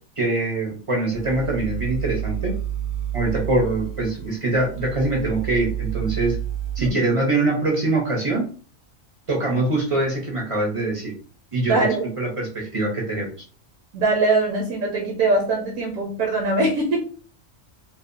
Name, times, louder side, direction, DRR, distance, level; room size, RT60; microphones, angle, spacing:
voice 1, 0.2-2.5 3.1-6.4 6.8-8.5 9.3-11.1 11.5-11.7 12.2-13.3, right 2 dB, 45° right, -1 dB, 0.4 m, -23 dB
sound 1, 1.1-6.9, right 10 dB, 60° left, 1.0 m, -30 dB
voice 2, 11.7-12.1 13.9-17.0, right 2 dB, 80° right, 0 dB, 1.0 m, -22 dB
2.7 x 2.1 x 2.5 m, 0.41 s
omnidirectional pair, 1.4 m